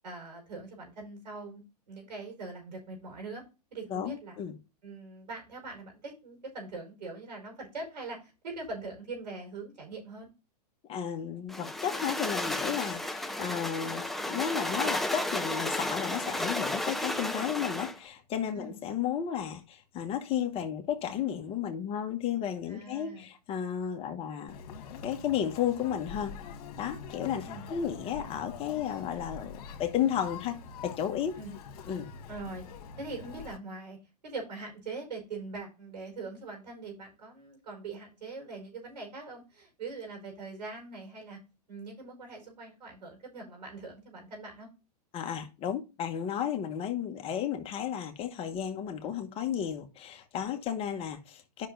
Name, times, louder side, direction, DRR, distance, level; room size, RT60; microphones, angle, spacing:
voice 1, 0.0-1.6 1.9-3.4 3.7-4.4 4.8-10.3 18.5-18.7 22.7-23.3 27.4-27.6 31.3-31.5 32.3-32.6 33.0-34.0 34.2-41.4 41.7-44.7, right 3 dB, 90° right, 5.3 m, -42 dB
voice 2, 3.9-4.5 10.9-24.6 25.0-26.4 26.8-30.6 30.8-31.3 31.9-32.1 45.1-51.7, left 9 dB, 25° left, 1.1 m, -33 dB
sound 1, 11.5-18.0, left 1 dB, ahead, 0.3 m, -33 dB
Conversation, 24.5-33.6, left 5 dB, 60° left, 1.6 m, -45 dB
11.0 x 5.8 x 2.6 m
hypercardioid pair, 135°, 21 cm